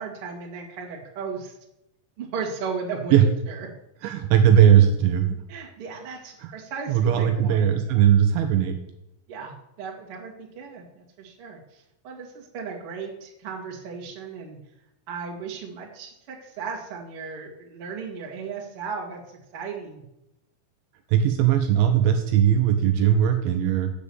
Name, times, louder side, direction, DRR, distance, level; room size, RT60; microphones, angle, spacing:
voice 1, 0.0-1.6 2.2-3.2 3.5-3.7 5.5-8.0 9.3-14.6 15.1-20.0, right 5 dB, 55° right, -2 dB, 1.6 m, -36 dB
voice 2, 4.0-5.4 6.4-6.5 6.9-8.8 21.1-23.9, right 9 dB, 80° right, 5 dB, 2.9 m, -19 dB
8.5 x 7.4 x 7.0 m, 0.86 s
omnidirectional pair, 6.0 m